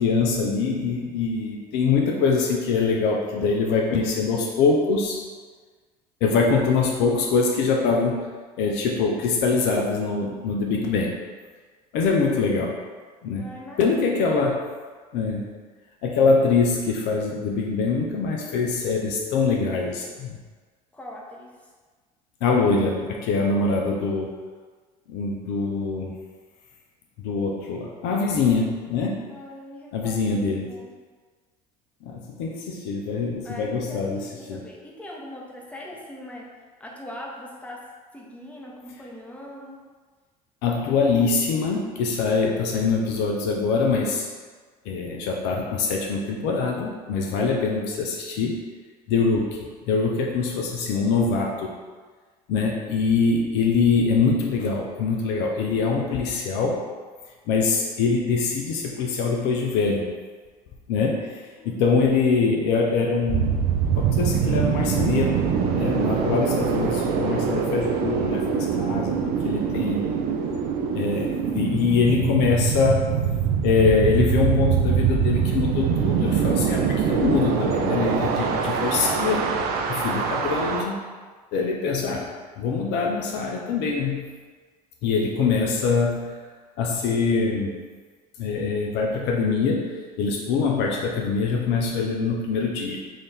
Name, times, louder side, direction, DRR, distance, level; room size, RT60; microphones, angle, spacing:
voice 1, 0.0-5.2 6.2-8.3 8.6-11.1 11.9-12.7 13.2-13.5 13.8-14.6 15.1-15.5 16.0-20.4 22.4-24.3 25.1-26.1 27.2-29.2 29.9-30.7 32.0-34.6 40.6-44.3 44.9-48.6 49.1-49.6 49.9-51.8 52.5-56.8 57.5-60.1 60.9-63.7 64.0-65.4 65.7-69.2 69.4-70.0 70.9-73.1 73.6-79.5 79.9-81.0 81.5-82.3 82.6-84.3 85.0-86.3 86.8-87.8 88.4-93.0, left 4 dB, 60° left, 0 dB, 0.6 m, -23 dB
voice 2, 13.3-14.3 20.9-21.5 29.3-30.9 33.4-36.5 36.8-37.8 38.1-39.8 55.8-56.1 61.6-62.0 69.9-70.3, left 1 dB, 5° left, -3 dB, 0.8 m, -41 dB
sound 1, 63.3-80.8, right 7 dB, 50° right, 0.5 m, -24 dB
3.8 x 2.6 x 3.4 m, 1.4 s
hypercardioid pair, 65°, 20 cm